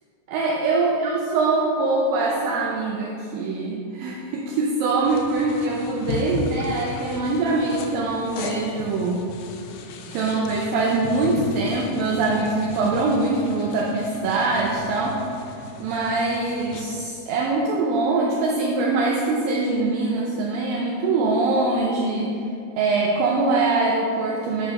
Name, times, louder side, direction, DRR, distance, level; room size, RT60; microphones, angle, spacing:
voice 1, 0.3-9.2 10.1-15.4 15.8-22.4 22.8-24.7, right 3 dB, 80° right, -1 dB, 2.2 m, -23 dB
sound 1, 5.0-17.0, left 3 dB, 85° left, 2.5 m, -36 dB
8.2 x 4.9 x 5.4 m, 2.6 s
omnidirectional pair, 4.5 m